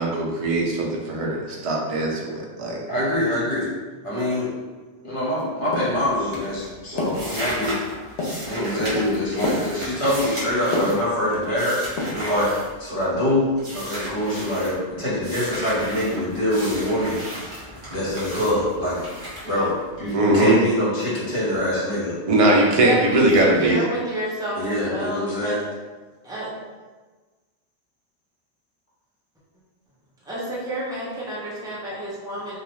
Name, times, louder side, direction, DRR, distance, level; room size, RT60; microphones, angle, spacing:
voice 1, 0.0-2.8 20.1-20.6 22.3-23.8, right 2 dB, 65° right, -2 dB, 0.3 m, -20 dB
voice 2, 2.9-3.7 4.0-4.5 5.0-7.8 8.4-11.8 12.1-12.5 12.8-19.0 19.5-22.1 24.5-25.6, left 1 dB, 50° left, -8 dB, 1.2 m, -24 dB
sound 1, 5.3-5.4 5.7-6.0 6.3-6.5 7.0-7.2 7.6-7.9 8.2-8.4 8.8-9.0 9.4-9.7 10.0-10.3 10.7-11.0 11.3-11.7 12.0-12.2, left 2 dB, 80° left, 0.9 m, -28 dB
sound 2, 5.9-6.2 6.5-13.2 13.6-14.8 15.2-20.1, equal, 30° right, 0.9 m, -35 dB
voice 3, 22.7-23.3 23.6-25.6 26.2-26.5 30.2-32.6, right 1 dB, 5° right, -8 dB, 0.5 m, -30 dB
2.3 x 2.3 x 3.1 m, 1.3 s
omnidirectional pair, 1.2 m